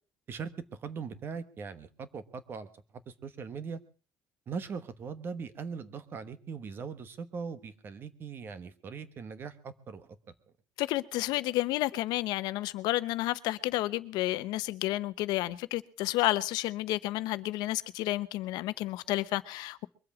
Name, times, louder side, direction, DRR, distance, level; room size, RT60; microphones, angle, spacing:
voice 1, 0.3-3.8 4.5-10.2, right 5 dB, 30° right, 1.2 m, -40 dB
voice 2, 10.8-19.9, left 17 dB, 80° left, 0.9 m, -31 dB
22.5 x 8.0 x 7.1 m
cardioid pair, 175°, 7 cm